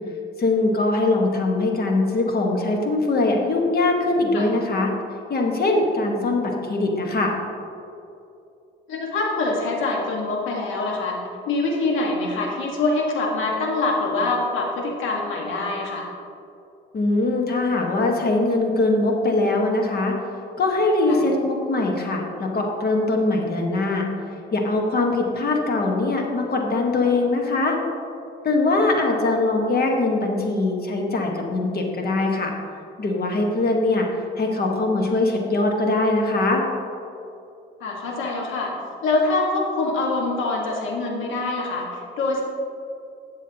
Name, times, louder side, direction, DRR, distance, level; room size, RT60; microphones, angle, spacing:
voice 1, 0.4-4.9 5.3-7.3 16.9-20.1 20.6-24.1 24.5-27.7 28.4-32.5 33.0-34.1 34.4-36.6, left 2 dB, 50° left, 1 dB, 1.5 m, -22 dB
voice 2, 8.9-11.1 11.4-16.1 21.1-21.2 37.8-38.7 39.0-42.4, left 3 dB, 85° left, -1 dB, 1.7 m, -24 dB
12.0 x 7.2 x 2.9 m, 2.7 s
cardioid pair, 90°, 20 cm